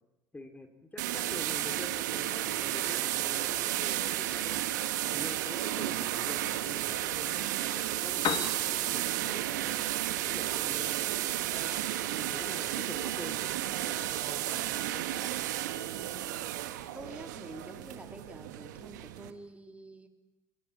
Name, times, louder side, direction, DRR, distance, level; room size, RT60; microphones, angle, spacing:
voice 1, 0.3-7.5 7.8-11.0 11.3-13.5 13.8-15.1, left 2 dB, 15° left, 6 dB, 2.9 m, -46 dB
sound 1, 1.0-19.3, right 14 dB, 80° right, 1.4 m, -33 dB
Piano, 8.0-16.0, left 9 dB, 55° left, 1.7 m, -43 dB
voice 2, 15.9-20.1, right 2 dB, 15° right, 4 dB, 3.4 m, -48 dB
26.5 x 17.5 x 8.4 m, 0.96 s
hypercardioid pair, 60°, 10 cm